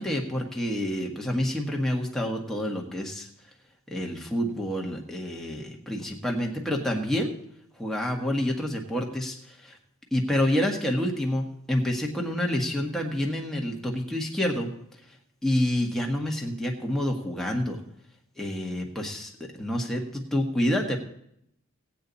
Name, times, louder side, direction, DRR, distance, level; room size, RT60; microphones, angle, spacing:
voice 1, 0.0-3.3 3.9-7.3 7.8-9.8 10.1-14.7 15.4-17.8 18.4-21.0, left 1 dB, ahead, 0 dB, 1.5 m, -28 dB
17.5 x 8.5 x 4.1 m, 0.74 s
head